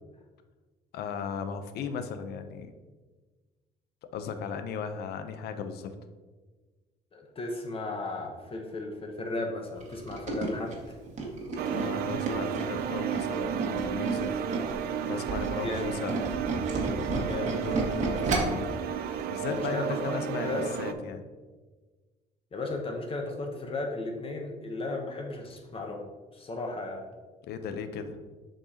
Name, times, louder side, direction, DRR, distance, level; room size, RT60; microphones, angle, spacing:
voice 1, 0.9-2.7 4.1-5.9 11.7-14.4 14.7-16.2 17.4-18.6 19.3-20.5 20.8-21.2 27.4-28.2, left 6 dB, 70° left, 9 dB, 0.7 m, -36 dB
voice 2, 7.1-11.0 15.5-15.9 17.2-17.6 19.5-20.7 22.5-26.0 26.3-27.1, left 2 dB, 35° left, 2 dB, 0.9 m, -35 dB
Tools, 9.8-14.8 15.1-18.7 19.1-19.3 19.6-19.7, right 2 dB, 45° right, 1.5 m, -32 dB
sound 1, 11.6-20.9, right 8 dB, 70° right, 0.5 m, -32 dB
7.6 x 4.9 x 2.8 m, 1.3 s
cardioid pair, 110°, 17 cm